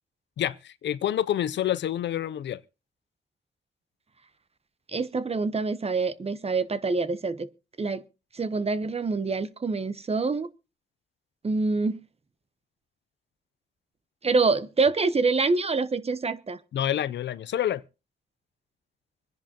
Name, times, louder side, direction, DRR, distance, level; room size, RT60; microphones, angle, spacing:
voice 1, 0.4-2.6 16.7-17.8, left 11 dB, 85° left, 0.6 m, -28 dB
voice 2, 4.9-7.5 7.8-8.0 8.3-10.5 11.4-12.0 14.2-16.6, right 4 dB, 35° right, 0.9 m, -26 dB
25.0 x 10.5 x 2.9 m
cardioid pair, 75°, 18 cm